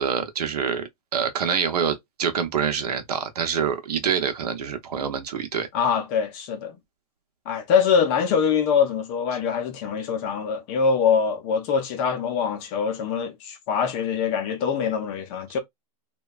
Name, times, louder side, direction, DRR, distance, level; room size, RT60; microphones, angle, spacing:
voice 1, 0.0-5.7, right 7 dB, 75° right, 0.8 m, -26 dB
voice 2, 5.7-6.8 7.5-15.6, left 6 dB, 15° left, 0.4 m, -24 dB
2.9 x 2.2 x 2.3 m
hypercardioid pair, 170°, 20 cm